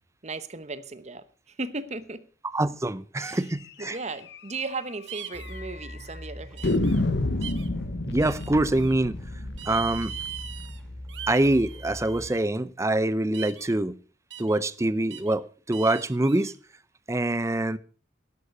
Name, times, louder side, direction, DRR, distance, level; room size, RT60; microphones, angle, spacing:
voice 1, 0.2-2.2 3.2-3.4 3.8-6.8, right 3 dB, 35° right, 0.9 m, -36 dB
voice 2, 2.5-4.0 8.1-9.2 9.7-10.1 11.3-13.9 14.4-16.5 17.1-17.8, right 1 dB, 15° right, 0.5 m, -25 dB
sound 1, 3.8-4.0 4.3-4.4 4.7-4.8 5.4-5.9 6.6-11.4, left 2 dB, 60° left, 0.9 m, -30 dB
sound 2, 5.1-5.6 6.6-7.0 7.4-7.7 8.2-8.9 9.6-10.8 11.1-12.4 13.3-13.7 14.3-14.6 15.1-15.3 15.7-16.5, right 10 dB, 65° right, 1.3 m, -40 dB
sound 3, 5.3-12.3, equal, 5° left, 2.6 m, -41 dB
11.5 x 11.5 x 5.5 m
head